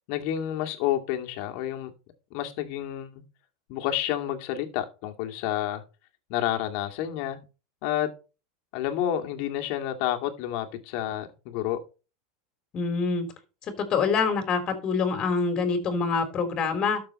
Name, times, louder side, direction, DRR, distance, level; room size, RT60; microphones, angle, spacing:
voice 1, 0.1-1.9 2.3-3.2 3.7-5.8 6.3-7.4 7.8-8.1 8.7-11.8, left 12 dB, 55° left, 2.4 m, -29 dB
voice 2, 12.7-13.3 13.8-17.0, left 5 dB, 35° left, 3.7 m, -25 dB
12.5 x 6.9 x 4.3 m
supercardioid pair, 125°, 2 cm